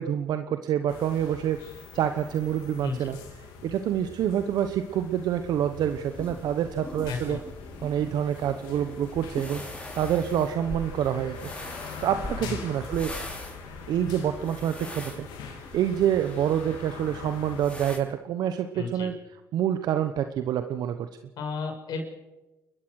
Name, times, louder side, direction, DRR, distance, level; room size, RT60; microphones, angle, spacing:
voice 1, 0.0-1.6 1.9-3.2 3.6-7.4 7.8-11.5 12.0-13.1 13.9-19.2 19.5-21.1, right 10 dB, 75° right, 9 dB, 1.0 m, -27 dB
sound 1, 0.9-17.6, left 5 dB, 85° left, 3.4 m, -43 dB
sound 2, 5.7-18.0, left 1 dB, 15° left, 5.5 m, -42 dB
voice 2, 7.1-7.4 12.4-12.6 18.7-19.1 21.4-22.1, left 5 dB, 70° left, 2 dB, 6.0 m, -33 dB
29.5 x 14.0 x 6.5 m, 1.1 s
supercardioid pair, 65°, 7 cm